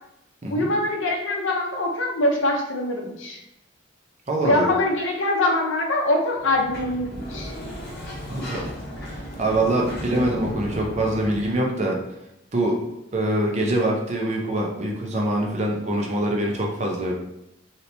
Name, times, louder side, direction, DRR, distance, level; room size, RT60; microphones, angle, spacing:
voice 1, 0.5-3.4 4.4-7.5, left 1 dB, 75° left, 1 dB, 0.7 m, -23 dB
voice 2, 4.3-4.7 8.3-8.7 9.4-12.0 12.5-12.8 13.1-17.1, right 1 dB, 35° right, -1 dB, 0.6 m, -24 dB
Sliding door, 6.3-11.7, equal, 55° left, 1.1 m, -35 dB
3.2 x 2.8 x 2.7 m, 0.82 s
head